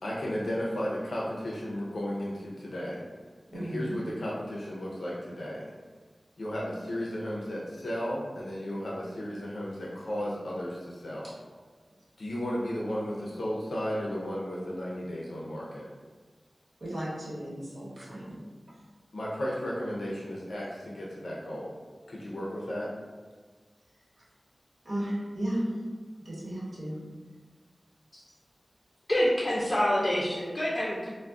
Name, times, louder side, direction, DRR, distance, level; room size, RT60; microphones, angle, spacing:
voice 1, 0.0-3.0 3.5-5.7 6.4-11.3 12.2-15.9 19.1-21.8 22.1-22.9, equal, 85° left, -5 dB, 0.5 m, -34 dB
voice 2, 3.5-4.0 11.2-11.3 16.8-18.4 24.8-25.9 26.2-27.0, right 1 dB, 75° right, -8 dB, 1.1 m, -34 dB
voice 3, 29.1-31.1, equal, 30° left, -6 dB, 0.4 m, -26 dB
2.3 x 2.1 x 3.5 m, 1.4 s
wide cardioid pair, 80°, 0 cm